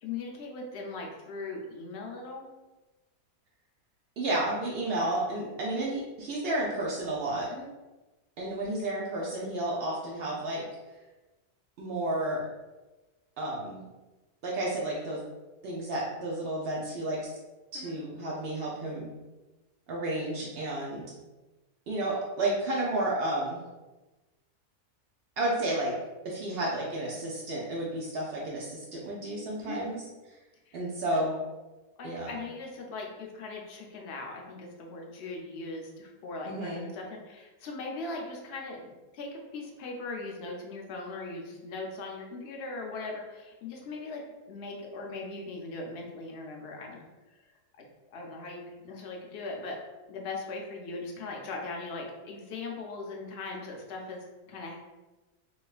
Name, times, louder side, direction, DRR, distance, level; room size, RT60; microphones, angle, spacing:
voice 1, 0.0-2.5 7.5-7.7 17.7-18.0 29.6-29.8 30.7-30.8 31.1-31.3 32.0-44.2 44.5-47.0 47.3-47.4 47.8-54.8, left 3 dB, 70° left, 0 dB, 0.6 m, -39 dB
voice 2, 4.2-7.5 8.4-10.6 11.8-12.5 13.4-13.9 14.4-15.2 15.6-17.4 17.7-19.1 19.9-21.0 21.9-23.6 25.4-25.9 26.2-30.0 30.7-31.4 32.0-32.4 36.5-36.8, right 1 dB, 75° right, -4 dB, 0.5 m, -31 dB
3.1 x 2.9 x 2.3 m, 1.1 s
omnidirectional pair, 1.7 m